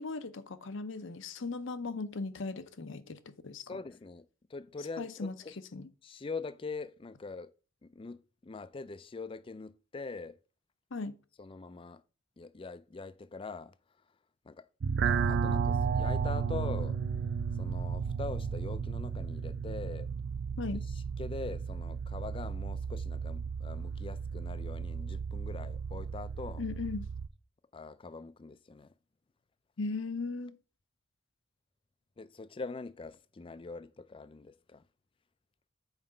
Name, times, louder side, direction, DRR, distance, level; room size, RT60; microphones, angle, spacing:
voice 1, 0.0-3.8 5.0-5.4 5.7-5.9 10.9-11.1 20.6-20.8 26.6-27.1 29.8-30.6, left 3 dB, 65° left, 0.7 m, -38 dB
voice 2, 3.6-5.6 6.0-7.5 7.8-10.4 11.4-12.0 12.4-13.7 14.4-14.7 15.0-17.0 17.6-20.1 20.9-26.6 27.7-28.9 32.2-34.8, left 4 dB, 25° left, 0.4 m, -43 dB
sound 1, 14.8-27.3, right 6 dB, 55° right, 0.4 m, -34 dB
5.7 x 4.8 x 6.5 m
head